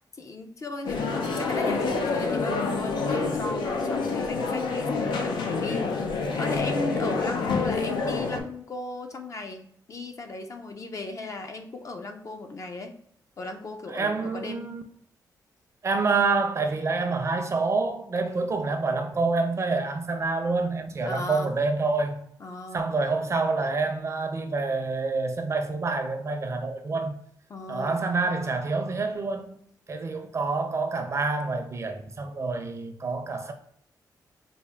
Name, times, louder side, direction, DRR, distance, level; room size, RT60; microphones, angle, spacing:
voice 1, 0.2-12.9 13.4-14.7 21.0-21.5 22.4-22.8 27.5-28.0, left 3 dB, 45° left, 0.5 m, -36 dB
sound 1, 0.8-8.4, left 4 dB, 90° left, 0.6 m, -27 dB
voice 2, 13.9-14.8 15.8-22.3 22.7-27.1 27.7-29.6 29.9-33.5, right 3 dB, 40° right, 0.5 m, -27 dB
4.2 x 2.1 x 3.4 m
cardioid pair, 90°, 8 cm